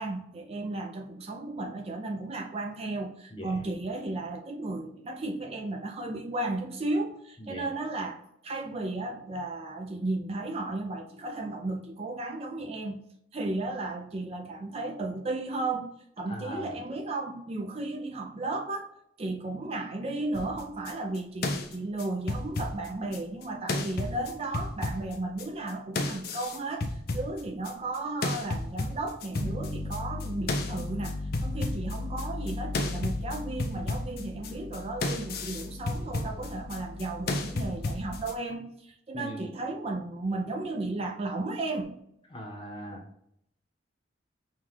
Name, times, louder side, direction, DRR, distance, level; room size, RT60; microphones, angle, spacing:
voice 1, 0.0-13.0 13.3-18.9 19.2-42.0, right 2 dB, 30° right, 2 dB, 0.4 m, -34 dB
voice 2, 16.3-16.7 39.1-39.5 42.3-43.0, equal, 25° left, 1 dB, 0.8 m, -39 dB
sound 1, 20.3-23.4 23.7-25.7 25.9-28.0 28.2-38.3, left 2 dB, 55° left, 0.5 m, -33 dB
5.6 x 2.4 x 3.1 m, 0.75 s
head